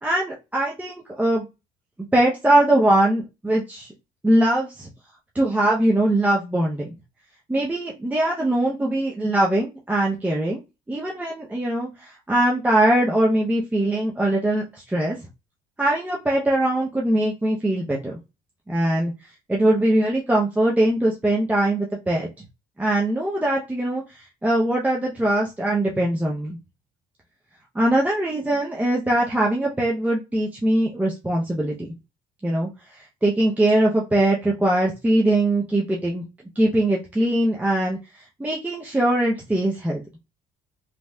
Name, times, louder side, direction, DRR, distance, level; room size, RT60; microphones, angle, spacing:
voice 1, 0.0-1.5 2.1-3.9 4.2-4.9 5.3-6.9 7.5-10.6 10.9-15.2 15.8-18.2 18.7-19.1 19.5-22.3 22.8-26.6 27.7-31.9 32.4-36.2 36.6-40.0, right 1 dB, 10° right, -3 dB, 0.6 m, -22 dB
3.0 x 2.6 x 2.2 m, 0.26 s
supercardioid pair, 90°, 17 cm